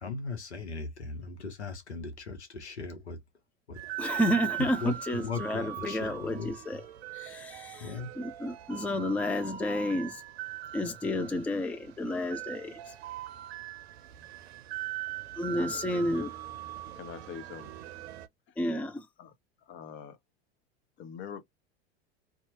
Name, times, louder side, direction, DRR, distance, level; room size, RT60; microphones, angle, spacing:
voice 1, 0.0-3.2 3.7-3.8 4.8-6.5 7.2-7.4 7.8-8.1, left 4 dB, 90° left, 1.0 m, -38 dB
sound 1, 3.7-18.3, right 14 dB, 70° right, 0.6 m, -41 dB
voice 2, 4.0-6.9 7.1-10.2 10.7-12.9 15.4-16.3 18.6-19.1, left 1 dB, 5° left, 0.4 m, -31 dB
voice 3, 15.9-16.3 17.0-17.7 19.2-19.3 19.7-20.2 21.0-21.4, left 8 dB, 35° left, 0.8 m, -43 dB
2.7 x 2.4 x 2.9 m
hypercardioid pair, 80°, 32 cm